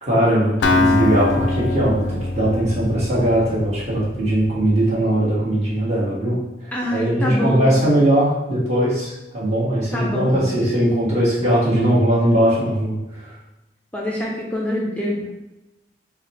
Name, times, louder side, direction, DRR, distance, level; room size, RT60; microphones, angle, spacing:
voice 1, 0.0-6.4 6.9-13.3, right 1 dB, 35° right, -7 dB, 1.4 m, -19 dB
Acoustic guitar, 0.6-4.5, left 2 dB, 80° left, 0.4 m, -22 dB
voice 2, 6.7-7.7 9.9-10.5 13.9-15.4, left 1 dB, 10° left, -3 dB, 0.5 m, -25 dB
4.0 x 2.2 x 4.2 m, 0.96 s
head